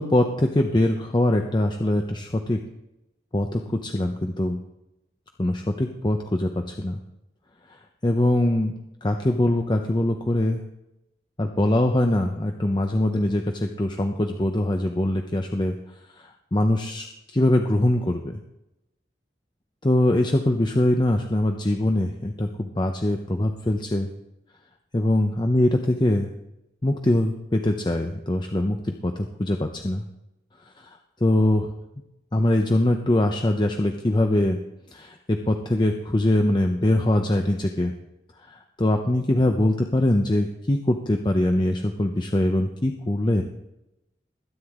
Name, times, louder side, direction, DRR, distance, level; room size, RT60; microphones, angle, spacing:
voice 1, 0.0-2.6 3.3-4.6 5.4-7.0 8.0-8.7 9.0-10.6 11.4-15.7 16.5-17.1 17.3-18.4 19.8-22.5 22.8-24.1 24.9-26.3 26.8-30.0 31.2-31.7 32.3-34.6 34.9-37.9 38.5-43.4, left 1 dB, 25° left, 4 dB, 0.7 m, -22 dB
20.5 x 10.0 x 3.7 m, 0.90 s
head